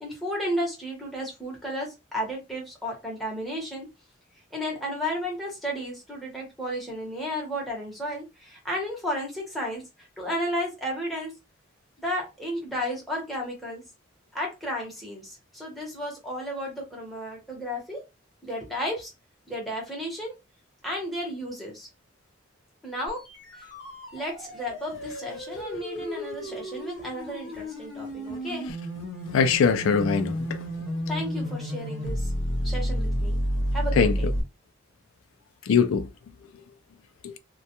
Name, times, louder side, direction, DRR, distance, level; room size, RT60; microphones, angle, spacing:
voice 1, 0.0-3.9 4.5-11.3 12.0-13.8 14.3-18.0 18.4-19.1 19.5-20.3 20.8-21.9 22.8-23.2 23.5-23.7 24.1-28.7 31.1-32.3 32.6-33.4 33.7-34.3, equal, ahead, 0.9 m, -33 dB
sound 1, 23.1-34.4, equal, 65° left, 0.8 m, -31 dB
voice 2, 29.3-30.6 34.0-34.1 35.7-36.1 37.2-37.4, left 6 dB, 90° left, 0.4 m, -22 dB
2.2 x 2.2 x 2.8 m
head